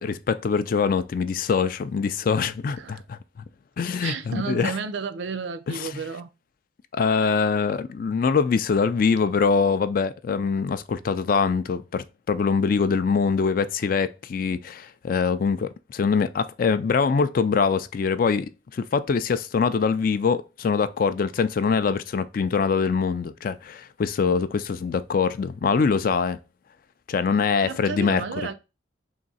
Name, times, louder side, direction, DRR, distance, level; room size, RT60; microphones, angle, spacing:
voice 1, 0.0-3.2 3.8-4.7 5.7-6.0 6.9-26.4 27.1-28.2, left 5 dB, 45° left, 0.3 m, -23 dB
voice 2, 4.0-6.3 27.6-28.5, right 5 dB, 70° right, 0.5 m, -32 dB
3.6 x 3.0 x 4.1 m
head